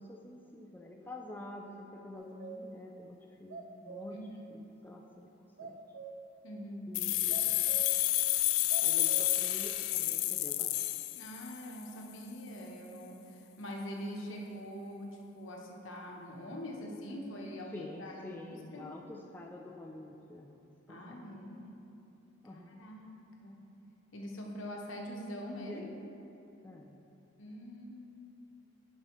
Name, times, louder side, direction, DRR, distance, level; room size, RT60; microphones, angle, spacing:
voice 1, 0.0-4.2 4.5-5.3 5.6-5.8 6.9-7.7 8.8-10.8 17.7-20.6 20.9-21.4 22.4-22.7 25.6-25.9 26.6-27.0, left 1 dB, 10° left, -1 dB, 0.3 m, -48 dB
sound 1, 2.2-2.8 3.2-3.3 3.5-4.3 5.6-6.4 7.3-8.1 8.7-9.4, right 5 dB, 70° right, 0.5 m, -46 dB
voice 2, 6.4-6.9 11.1-18.9 20.9-21.7 22.5-23.2 23.4-23.6 24.1-25.8 27.4-28.3, equal, 70° left, 0 dB, 0.9 m, -44 dB
sound 2, 6.9-11.7, left 15 dB, 90° left, 0.3 m, -30 dB
10.0 x 5.4 x 3.1 m, 2.8 s
head